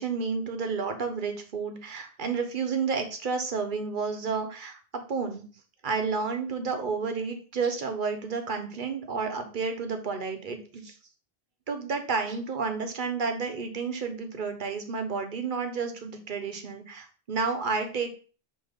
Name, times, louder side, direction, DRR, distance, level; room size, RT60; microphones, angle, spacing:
voice 1, 0.0-5.4 5.8-10.9 11.7-18.1, right 5 dB, 55° right, 6 dB, 1.1 m, -31 dB
6.3 x 2.9 x 5.2 m, 0.39 s
omnidirectional pair, 1.0 m